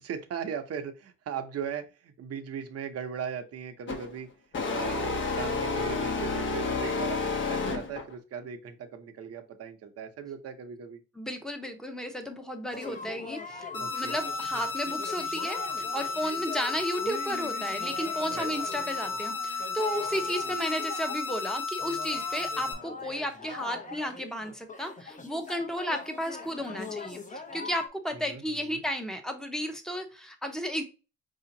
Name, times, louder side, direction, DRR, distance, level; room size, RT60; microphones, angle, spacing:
voice 1, 0.0-4.3 4.5-11.0 13.8-14.2 18.3-18.5 28.1-28.8, right 7 dB, 55° right, 6 dB, 0.9 m, -38 dB
sound 1, 3.9-4.1 4.5-8.1, left 4 dB, 40° left, 1.1 m, -30 dB
voice 2, 11.1-30.8, equal, ahead, 5 dB, 1.0 m, -33 dB
sound 2, 12.7-27.9, left 4 dB, 25° left, 1.0 m, -42 dB
sound 3, 13.7-22.7, left 4 dB, 85° left, 1.3 m, -34 dB
4.9 x 2.8 x 2.7 m, 0.31 s
cardioid pair, 90°, 30 cm